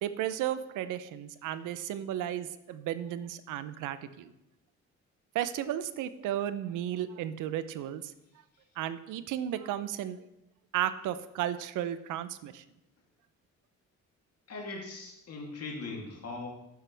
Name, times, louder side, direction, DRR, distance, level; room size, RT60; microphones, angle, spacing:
voice 1, 0.0-4.3 5.3-8.1 8.8-10.2 10.7-12.6, right 11 dB, 90° right, 13 dB, 0.7 m, -34 dB
voice 2, 14.5-16.5, left 3 dB, 55° left, 0 dB, 2.8 m, -40 dB
12.0 x 9.5 x 3.4 m, 0.88 s
cardioid pair, 90°, 30 cm